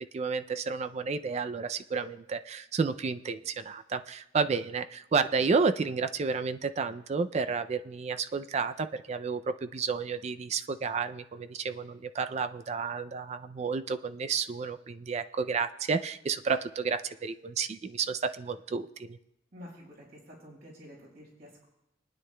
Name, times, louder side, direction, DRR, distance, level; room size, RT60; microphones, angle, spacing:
voice 1, 0.1-19.2, right 5 dB, 35° right, 10 dB, 0.3 m, -31 dB
voice 2, 19.5-21.7, equal, 55° right, -3 dB, 4.8 m, -49 dB
24.0 x 9.8 x 2.2 m, 0.91 s
head